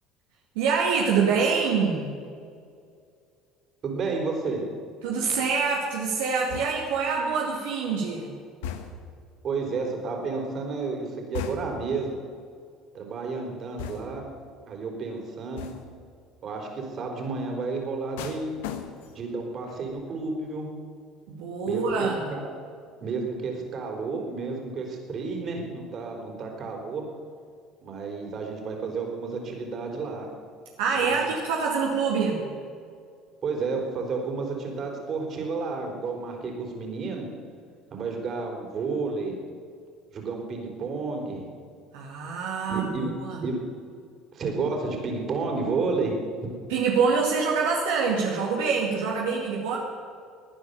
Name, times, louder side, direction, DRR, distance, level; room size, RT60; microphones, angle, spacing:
voice 1, 0.6-2.1 5.0-8.3 21.3-22.3 30.8-32.5 41.9-43.4 46.7-49.8, right 5 dB, 80° right, -2 dB, 2.3 m, -25 dB
voice 2, 3.8-4.6 9.4-12.1 12.9-14.2 14.7-15.6 16.4-18.5 19.1-20.7 21.7-22.4 23.0-27.0 27.8-30.3 30.9-31.1 33.4-37.3 37.9-39.4 40.1-41.5 42.7-43.1 43.4-43.6 44.3-46.1, right 4 dB, 50° right, 2 dB, 4.4 m, -31 dB
sound 1, 6.5-7.1 8.6-9.2 11.3-12.0 13.8-14.3 15.6-16.0 18.2-19.3 19.7-20.0, left 8 dB, 80° left, 1.3 m, -37 dB
18.5 x 10.0 x 7.0 m, 2.3 s
hypercardioid pair, 75°, 0 cm